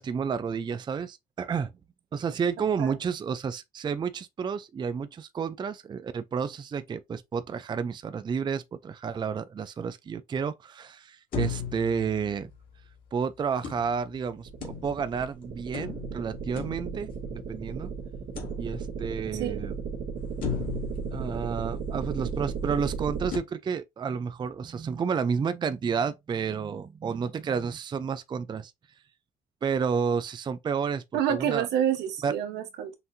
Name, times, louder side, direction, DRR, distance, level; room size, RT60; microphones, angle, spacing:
voice 1, 0.0-1.7 2.1-12.5 13.1-17.9 18.6-19.7 21.1-28.7 29.6-31.7 32.2-32.3, right 6 dB, 25° right, 0.4 m, -31 dB
sound 1, 11.3-12.9 13.6-15.3 15.7-17.7 18.4-19.2 19.7-19.8 20.4-22.1 23.3-23.4, left 7 dB, 55° left, 2.3 m, -37 dB
sound 2, 14.5-23.3, right 6 dB, 65° right, 1.6 m, -35 dB
voice 2, 31.1-32.9, right 10 dB, 85° right, 1.1 m, -28 dB
5.8 x 2.7 x 2.6 m
cardioid pair, 110°, 17 cm